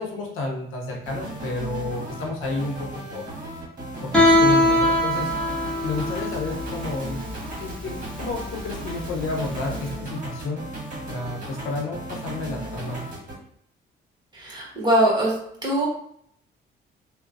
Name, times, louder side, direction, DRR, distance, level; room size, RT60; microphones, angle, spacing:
voice 1, 0.0-3.2 4.0-5.3 5.8-7.2 7.6-10.6 11.1-13.0, left 2 dB, 85° left, 0 dB, 0.8 m, -31 dB
sound 1, 0.9-13.3, right 1 dB, 40° right, 1.2 m, -36 dB
Guitar, 4.1-9.8, left 1 dB, 5° left, 1.2 m, -22 dB
voice 2, 14.3-15.3 15.6-15.9, right 1 dB, 20° right, -4 dB, 1.3 m, -21 dB
3.0 x 2.1 x 2.6 m, 0.67 s
cardioid pair, 90°, 20 cm